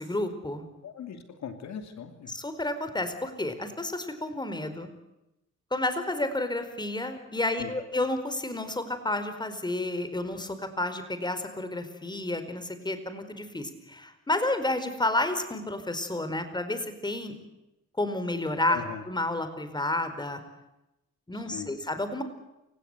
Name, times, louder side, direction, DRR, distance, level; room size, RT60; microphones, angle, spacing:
voice 1, 0.0-0.7 2.3-4.9 5.7-17.3 18.0-20.4 21.3-22.2, left 2 dB, 15° left, 10 dB, 4.6 m, -31 dB
voice 2, 0.8-2.3 7.6-7.7 18.7-19.0 21.3-21.7, left 7 dB, 65° left, 7 dB, 2.8 m, -39 dB
29.0 x 17.0 x 8.1 m, 0.92 s
cardioid pair, 90°, 30 cm